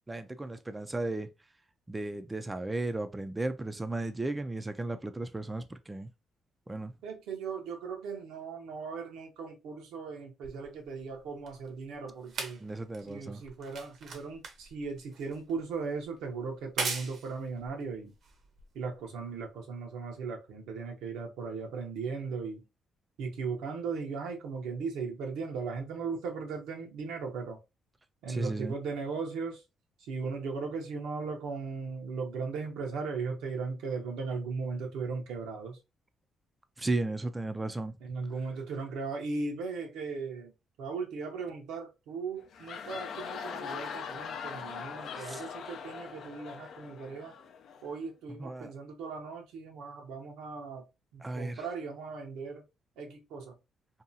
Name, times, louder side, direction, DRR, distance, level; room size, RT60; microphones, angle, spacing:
voice 1, 0.1-1.3 1.9-6.1 6.7-6.9 12.6-13.4 28.3-28.8 36.8-37.9 45.2-45.4 48.4-48.7 51.2-51.6, right 2 dB, 15° right, 0.3 m, -35 dB
voice 2, 7.0-12.6 13.1-18.1 18.7-22.6 23.2-27.6 28.2-29.6 30.0-35.8 38.0-40.5 40.8-47.4 47.8-50.8 51.1-52.6 53.0-53.6, right 4 dB, 90° right, 0.8 m, -37 dB
sound 1, 10.4-19.1 19.9-20.0, right 4 dB, 60° right, 0.7 m, -41 dB
sound 2, 42.4-48.0, left 6 dB, 70° left, 0.4 m, -41 dB
2.7 x 2.3 x 2.5 m
cardioid pair, 90°, 0 cm